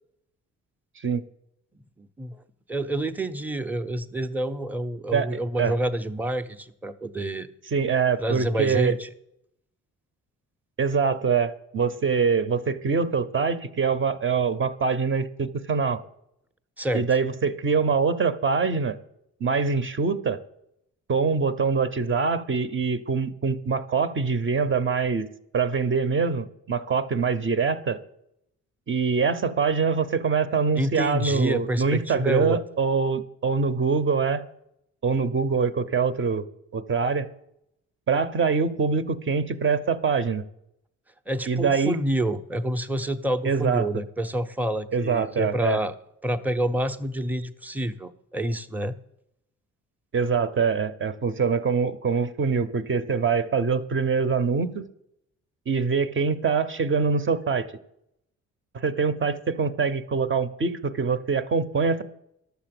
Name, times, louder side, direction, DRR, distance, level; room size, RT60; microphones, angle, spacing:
voice 1, 1.0-1.3 5.1-5.8 7.7-9.0 10.8-16.0 16.9-19.0 19.4-20.4 21.1-25.3 25.5-28.0 28.9-34.4 35.0-36.4 36.7-37.3 38.1-40.4 41.5-42.0 43.4-43.9 44.9-45.8 50.1-54.9 55.7-57.7 58.7-62.0, right 5 dB, 40° right, 11 dB, 0.9 m, -24 dB
voice 2, 2.0-2.4 2.7-7.5 8.2-9.1 16.8-17.0 30.7-32.6 41.3-45.9 46.2-49.0, right 1 dB, 5° right, 9 dB, 0.7 m, -28 dB
11.0 x 7.0 x 7.7 m, 0.80 s
cardioid pair, 90°, 30 cm